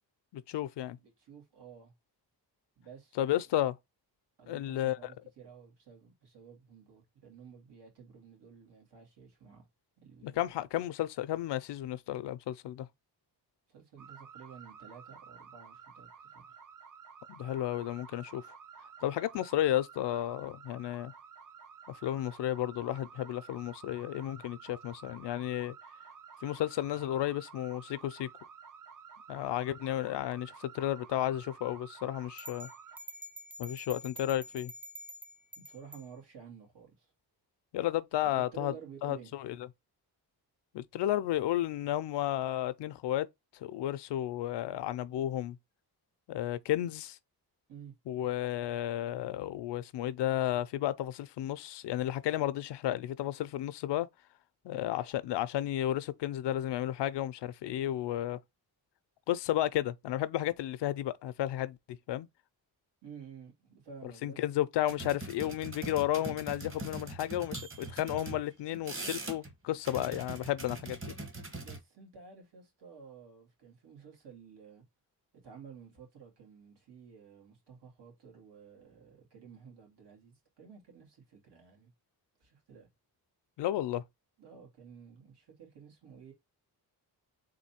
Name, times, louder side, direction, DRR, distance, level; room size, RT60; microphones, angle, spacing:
voice 1, 0.3-1.0 3.2-3.8 4.5-5.1 10.2-12.9 17.3-18.5 19.0-21.1 21.9-25.7 26.4-28.3 29.3-32.7 33.6-34.7 37.7-38.7 39.0-39.6 40.7-43.3 43.6-45.6 46.3-47.2 48.1-54.1 54.6-58.4 59.3-62.3 64.2-71.1 83.6-84.0, left 13 dB, 85° left, 0.5 m, -33 dB
voice 2, 1.0-1.9 2.8-3.4 4.4-9.7 10.0-10.4 13.7-16.6 35.6-37.1 38.2-39.3 47.7-47.9 63.0-64.4 71.5-74.8 75.4-81.9 82.4-82.9 84.4-86.3, right 6 dB, 80° right, 2.1 m, -52 dB
sound 1, 14.0-33.0, right 6 dB, 50° right, 0.6 m, -52 dB
sound 2, 32.4-36.1, equal, 5° right, 0.3 m, -47 dB
sound 3, 64.9-68.4 68.7-69.5 69.8-71.8, right 2 dB, 30° right, 1.3 m, -42 dB
3.8 x 2.7 x 4.2 m
cardioid pair, 95°, 40 cm